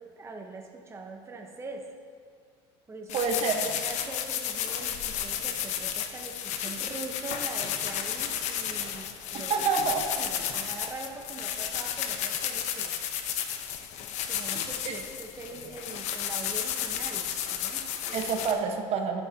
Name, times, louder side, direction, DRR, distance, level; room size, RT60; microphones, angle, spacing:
voice 1, 0.0-1.9 2.9-3.2 3.7-9.5 10.2-13.0 14.3-18.3, right 3 dB, 20° right, 2 dB, 1.2 m, -42 dB
sound 1, 3.1-18.5, left 9 dB, 65° left, 1.0 m, -33 dB
voice 2, 3.1-3.6 9.3-10.1 18.1-19.2, right 5 dB, 55° right, 3 dB, 1.4 m, -27 dB
13.5 x 10.5 x 2.9 m, 2.2 s
supercardioid pair, 90°, 13 cm